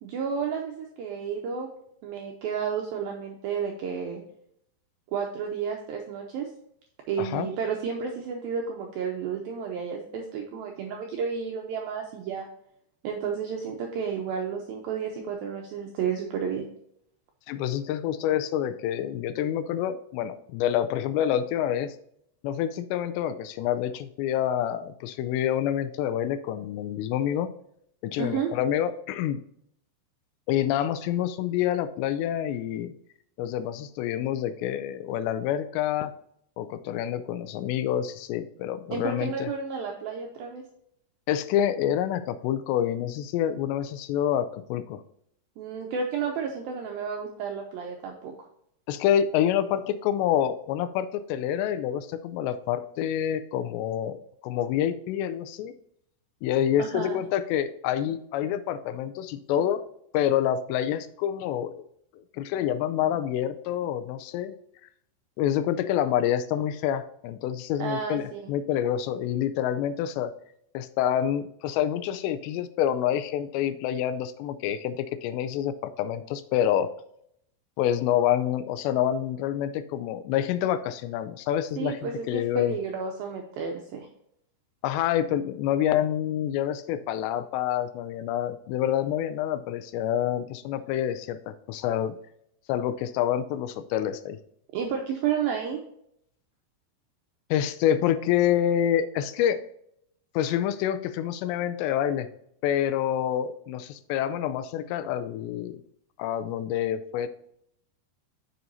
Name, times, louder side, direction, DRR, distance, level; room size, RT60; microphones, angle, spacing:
voice 1, 0.0-1.7 2.0-4.2 5.1-6.5 7.1-12.5 13.0-16.6 28.2-28.5 38.9-40.6 45.6-48.3 56.8-57.2 67.8-68.5 81.8-84.1 94.7-95.8, right 6 dB, 85° right, 2 dB, 2.1 m, -31 dB
voice 2, 7.2-7.5 17.5-22.0 22.4-27.5 28.0-29.4 30.5-32.9 33.4-36.1 36.6-39.5 41.3-45.0 48.9-55.7 56.4-59.8 60.1-61.9 62.3-64.5 65.4-70.3 70.7-76.9 77.8-82.8 84.8-92.2 92.7-94.4 97.5-99.6 100.4-102.3 102.6-105.8 106.2-107.3, left 10 dB, 85° left, 11 dB, 2.7 m, -27 dB
7.6 x 6.9 x 2.7 m, 0.72 s
omnidirectional pair, 5.1 m